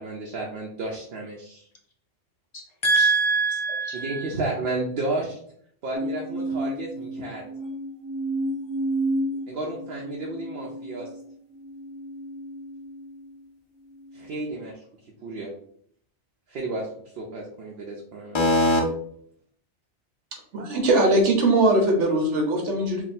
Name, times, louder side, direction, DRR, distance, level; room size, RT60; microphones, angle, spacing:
voice 1, 0.0-1.7 3.9-5.4 5.8-7.5 9.5-11.1 14.1-14.8 15.2-15.5 16.5-16.9 17.1-18.7, right 2 dB, 65° right, -2 dB, 0.8 m, -32 dB
voice 2, 2.5-4.2 18.3-18.8, right 2 dB, 30° left, 1 dB, 0.6 m, -22 dB
sound 1, 5.9-13.4 14.0-14.5, right 1 dB, 50° left, 1.1 m, -32 dB
voice 3, 20.3-23.0, right 2 dB, 85° right, 2 dB, 1.1 m, -21 dB
3.5 x 2.3 x 4.1 m, 0.65 s
omnidirectional pair, 1.2 m